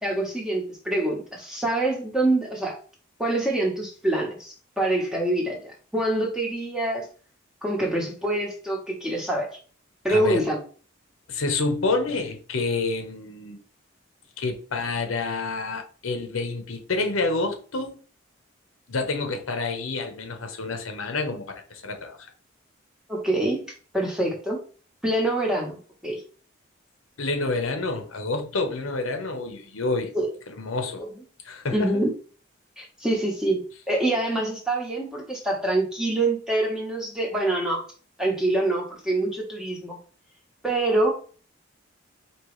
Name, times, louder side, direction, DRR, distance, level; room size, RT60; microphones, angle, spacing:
voice 1, 0.0-2.7 3.2-7.1 7.6-9.5 10.0-10.6 23.1-23.6 23.9-24.6 25.0-25.8 26.0-26.2 30.1-30.3 31.0-31.1 31.7-32.1 32.8-33.6 33.9-37.8 38.2-40.0 40.6-41.1, right 1 dB, 5° right, 1.0 m, -25 dB
voice 2, 10.1-10.5 11.3-13.6 14.4-18.0 18.9-22.2 27.2-30.1 30.5-31.0 31.4-32.0, left 3 dB, 85° left, 0.9 m, -28 dB
4.7 x 3.0 x 3.1 m
head